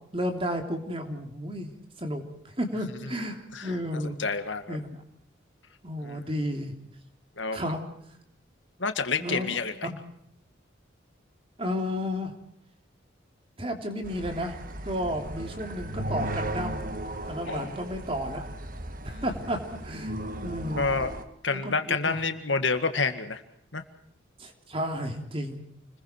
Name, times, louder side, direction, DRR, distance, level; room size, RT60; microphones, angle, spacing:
voice 1, 0.1-1.7 2.0-2.2 2.6-4.2 4.7-5.0 5.8-6.7 7.5-7.8 9.2-10.0 11.6-12.3 13.6-14.5 14.8-16.8 17.2-18.4 19.0-20.1 20.4-20.8 21.5-22.2 24.4-25.6, equal, 30° right, 4 dB, 3.2 m, -32 dB
voice 2, 4.2-4.8 6.0-6.2 7.4-7.6 8.8-9.7 17.5-17.7 20.8-21.1 21.4-23.4 23.7-23.8, left 4 dB, 75° left, 8 dB, 2.0 m, -28 dB
sound 1, 14.0-21.2, right 1 dB, 45° right, 1.7 m, -36 dB
29.5 x 21.5 x 4.6 m, 0.74 s
head